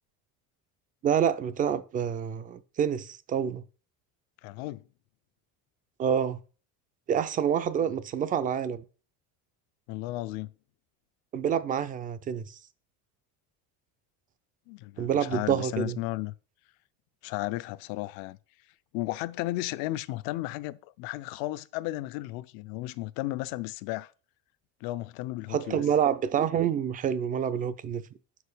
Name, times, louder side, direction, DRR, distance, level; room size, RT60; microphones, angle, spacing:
voice 1, 1.0-3.6 6.0-6.4 7.1-8.8 11.3-12.4 15.0-16.0 25.5-28.0, right 8 dB, 25° right, 0.3 m, -27 dB
voice 2, 4.4-4.8 9.9-10.5 14.7-16.3 17.2-18.4 18.9-24.1 24.8-25.8, left 18 dB, 70° left, 0.5 m, -34 dB
6.8 x 4.8 x 4.8 m
cardioid pair, 150°, 37 cm